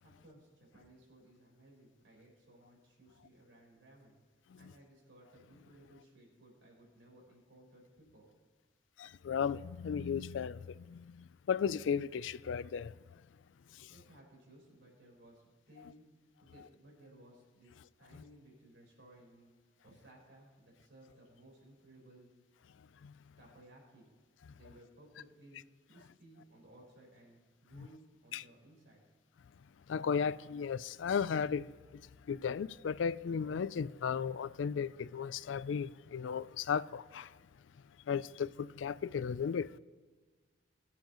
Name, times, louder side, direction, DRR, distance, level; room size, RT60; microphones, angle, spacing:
voice 1, 0.0-8.3 13.9-16.0 16.4-19.5 19.8-22.3 23.4-24.1 24.5-29.0, right 1 dB, 80° right, 4.2 m, -60 dB
voice 2, 9.0-12.9 13.8-13.9 23.0-23.1 28.3-28.4 29.9-31.8 32.3-37.3 38.1-39.7, left 6 dB, 85° left, 0.4 m, -35 dB
22.0 x 7.6 x 3.0 m
head